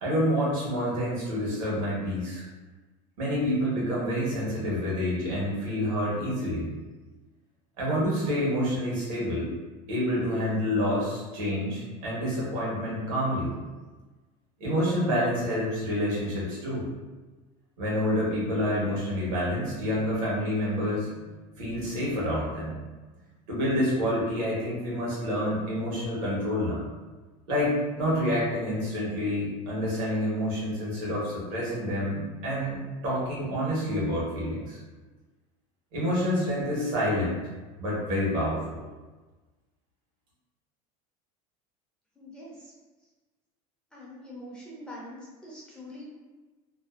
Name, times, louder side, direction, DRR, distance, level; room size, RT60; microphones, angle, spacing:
voice 1, 0.0-2.4 3.2-6.7 7.8-9.5 9.9-13.5 14.6-16.8 17.8-21.3 21.6-22.7 23.5-26.8 27.5-34.8 35.9-37.3 37.8-38.8, equal, 80° right, -6 dB, 1.2 m, -28 dB
voice 2, 42.2-42.7 43.9-46.0, left 1 dB, 5° left, -6 dB, 0.5 m, -44 dB
2.6 x 2.0 x 2.3 m, 1.3 s
supercardioid pair, 130°, 17 cm